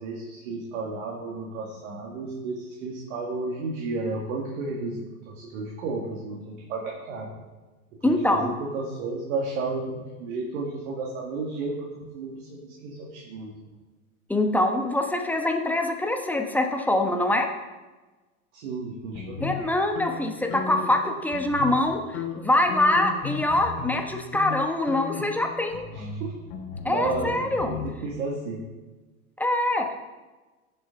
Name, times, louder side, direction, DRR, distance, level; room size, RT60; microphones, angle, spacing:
voice 1, 0.0-7.3 8.0-13.8 18.5-19.7 25.9-26.3 26.8-28.7, right 3 dB, 55° right, -2 dB, 2.0 m, -33 dB
voice 2, 8.0-8.5 14.3-17.5 19.4-25.9 26.8-27.7 29.4-30.0, left 1 dB, 5° left, 3 dB, 1.1 m, -24 dB
sound 1, 19.1-21.0 21.3-21.9 22.1-24.0 24.3-24.6 24.9-27.9, left 5 dB, 40° left, 3.2 m, -35 dB
15.0 x 7.2 x 3.8 m, 1.2 s
figure-of-eight pair, 95°, 45 cm